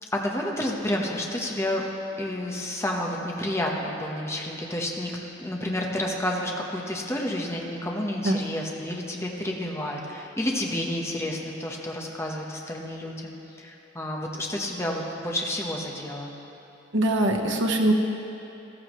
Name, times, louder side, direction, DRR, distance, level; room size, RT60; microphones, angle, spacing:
voice 1, 0.0-1.9 2.2-16.3, left 1 dB, 15° left, -1 dB, 1.1 m, -30 dB
voice 2, 16.9-17.9, right 1 dB, 90° right, 1 dB, 1.1 m, -22 dB
14.0 x 14.0 x 3.1 m, 2.9 s
head